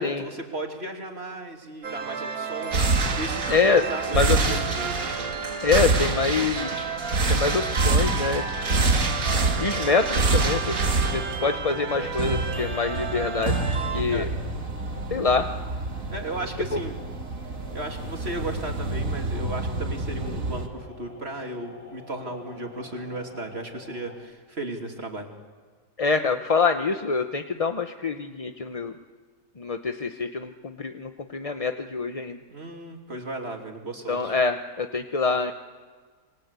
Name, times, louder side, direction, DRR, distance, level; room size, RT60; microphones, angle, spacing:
voice 1, 0.0-5.3 14.1-14.3 16.1-17.0 17.7-25.3 32.5-34.3, right 1 dB, 45° right, 3 dB, 3.1 m, -35 dB
sound 1, 1.8-14.0, right 6 dB, 80° right, 2.0 m, -33 dB
sound 2, 2.7-20.7, right 3 dB, 65° right, 2.3 m, -27 dB
voice 2, 3.5-3.8 4.1-4.6 5.6-6.8 7.3-8.9 9.6-10.8 11.1-13.6 13.9-14.3 15.1-15.5 26.0-28.9 29.6-32.4 34.1-35.5, left 4 dB, 30° left, 7 dB, 0.8 m, -25 dB
sound 3, 4.3-24.2, left 2 dB, 80° left, 3.7 m, -47 dB
27.5 x 23.5 x 8.2 m, 1.5 s
omnidirectional pair, 1.5 m